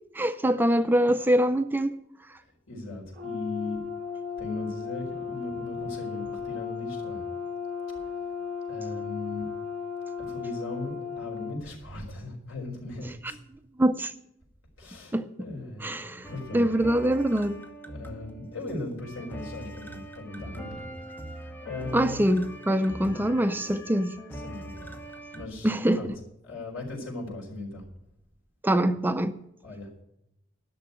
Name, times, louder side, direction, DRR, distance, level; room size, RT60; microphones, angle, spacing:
voice 1, 0.1-2.0 13.8-14.1 15.1-15.3 15.8-16.3 16.5-17.6 21.9-24.2 25.6-26.1 28.6-29.4, right 1 dB, 10° right, 0.4 m, -24 dB
voice 2, 2.7-3.8 4.4-7.2 8.0-8.2 8.7-9.5 10.2-13.4 14.8-16.7 17.9-20.9 21.3-22.3 24.3-24.9 25.3-26.1 26.4-27.8 29.6-30.0, left 2 dB, 70° left, 4.3 m, -38 dB
Brass instrument, 3.1-11.6, left 6 dB, 50° right, 6.3 m, -35 dB
sound 1, 16.2-25.5, right 1 dB, 10° left, 1.0 m, -42 dB
11.5 x 6.6 x 9.2 m
head